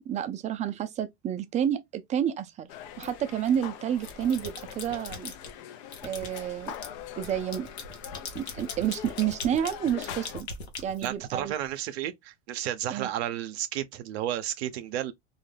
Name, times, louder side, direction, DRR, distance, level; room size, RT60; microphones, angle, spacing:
voice 1, 0.1-2.7 3.0-5.3 6.0-6.7 7.2-7.7 8.3-10.5 10.8-11.5 12.9-13.1, right 9 dB, 25° right, 0.3 m, -30 dB
sound 1, 2.7-10.4, left 10 dB, 60° left, 0.5 m, -43 dB
sound 2, 3.0-3.6 3.9-5.5 5.9-11.7, left 4 dB, 90° left, 0.8 m, -41 dB
voice 2, 11.0-15.1, right 11 dB, 75° right, 0.5 m, -32 dB
2.3 x 2.0 x 3.0 m
hypercardioid pair, 95°, 32 cm